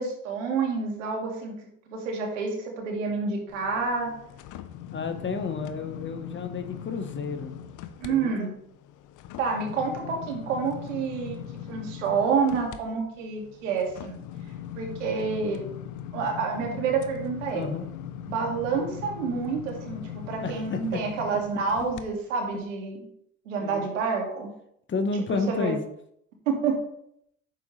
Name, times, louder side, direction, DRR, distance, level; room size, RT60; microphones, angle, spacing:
voice 1, 0.0-4.1 8.0-8.5 9.4-11.4 11.7-14.2 14.8-15.6 16.1-17.6 18.2-23.0 23.5-24.5 25.3-25.8 26.5-26.9, right 5 dB, 85° right, 0 dB, 2.3 m, -28 dB
sound 1, 3.5-8.1 8.5-22.0 22.5-22.6, left 10 dB, 55° left, 0.8 m, -40 dB
voice 2, 4.9-7.5 8.0-8.5 17.5-17.8 20.4-21.0 23.6-23.9 24.9-25.8, left 4 dB, 30° left, 7 dB, 1.2 m, -31 dB
9.0 x 7.0 x 3.3 m, 0.72 s
hypercardioid pair, 80°, 37 cm